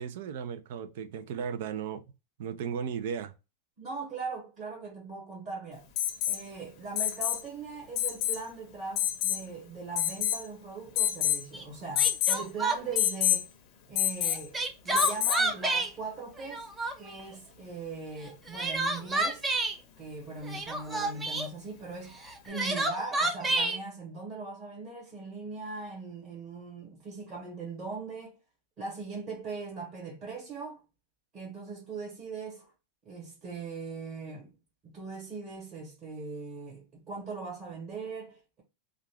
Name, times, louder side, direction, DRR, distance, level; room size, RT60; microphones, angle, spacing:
voice 1, 0.0-2.0 2.4-3.3, right 7 dB, 65° right, 0.5 m, -35 dB
voice 2, 3.8-5.8 6.3-13.5 13.9-14.6 14.8-16.7 17.0-19.5 20.0-22.2 22.4-28.4 28.8-30.8 31.3-32.7 33.0-34.5 34.8-38.6, right 4 dB, 30° right, 1.2 m, -40 dB
Alarm, 6.0-6.4 7.0-7.4 8.0-8.4 9.0-9.4 10.0-10.5 11.0-11.4 12.0-12.4 13.0-13.4 14.0-14.5 15.0-15.5 17.2-17.3, left 12 dB, 40° left, 0.6 m, -27 dB
Crying sobbing, 11.5-11.6 12.0-13.0 14.2-15.9 16.4-17.2 18.2-19.8 20.4-21.5 22.2-23.8, right 2 dB, 10° right, 0.4 m, -29 dB
2.4 x 2.3 x 3.3 m
supercardioid pair, 155°, 0 cm